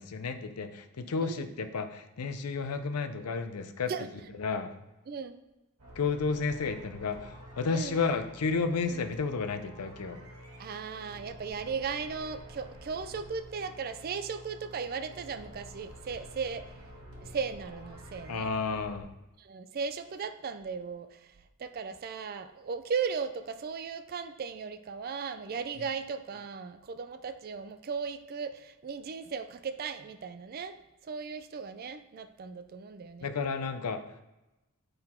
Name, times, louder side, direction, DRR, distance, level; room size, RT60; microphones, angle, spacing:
voice 1, 0.0-3.9 4.4-4.8 6.0-10.2 18.3-19.1 33.2-34.0, left 4 dB, 85° left, 8 dB, 0.6 m, -32 dB
voice 2, 5.1-5.4 7.7-8.0 8.9-9.0 10.6-16.7 17.2-18.5 19.4-21.3 21.6-30.7 31.1-33.3, right 5 dB, 45° right, 9 dB, 0.4 m, -37 dB
sound 1, 5.8-19.0, equal, 85° right, 1.6 m, -49 dB
7.6 x 3.9 x 4.3 m, 0.99 s
head